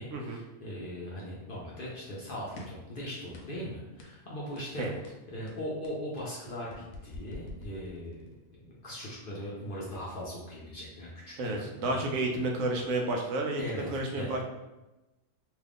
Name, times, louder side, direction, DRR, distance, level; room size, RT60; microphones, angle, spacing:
voice 1, 0.0-4.9 5.3-8.3 8.5-12.1 13.6-13.9 14.1-14.3, equal, 55° left, -5 dB, 0.6 m, -39 dB
sound 1, 2.6-2.9 3.3-3.7 4.0-4.2 4.6-4.8 5.0-8.4, left 2 dB, 80° left, 1.0 m, -47 dB
voice 2, 11.4-14.4, right 2 dB, 75° right, 1 dB, 1.0 m, -31 dB
2.8 x 2.4 x 3.4 m, 1.0 s
omnidirectional pair, 1.4 m